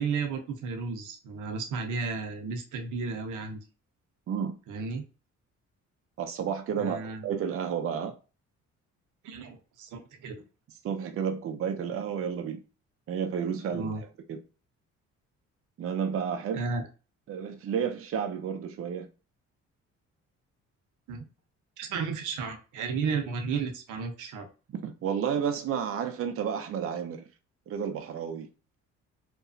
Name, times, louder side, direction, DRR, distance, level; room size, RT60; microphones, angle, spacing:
voice 1, 0.0-3.6 4.7-5.0 6.7-7.3 9.2-10.4 13.7-14.0 16.5-16.9 21.1-21.2 21.8-24.5, right 4 dB, 80° right, 0.7 m, -33 dB
voice 2, 6.2-8.1 10.8-12.6 13.1-14.4 15.8-16.7 17.3-19.1 24.7-27.2 27.7-28.5, right 7 dB, 50° right, 0.5 m, -31 dB
2.8 x 2.2 x 2.5 m
cardioid pair, 90°, 30 cm